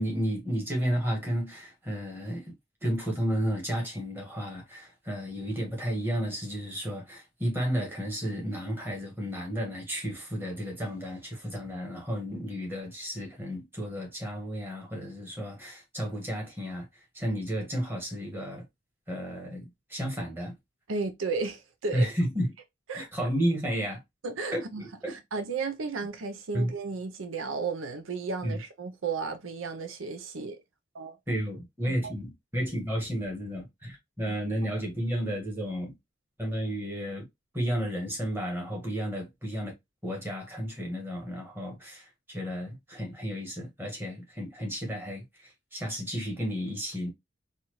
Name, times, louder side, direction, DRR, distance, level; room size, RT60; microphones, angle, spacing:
voice 1, 0.0-2.5 2.8-18.6 19.1-20.6 21.9-22.5 22.9-24.0 24.5-25.2 26.5-26.7 28.4-28.6 31.3-35.9 36.4-37.3 37.5-39.7 40.0-47.1, equal, 10° right, 1.4 m, -32 dB
voice 2, 20.9-22.1 22.9-23.1 24.2-30.6 30.9-31.2 34.3-34.4, right 4 dB, 85° right, 0.6 m, -34 dB
4.2 x 2.5 x 3.0 m
head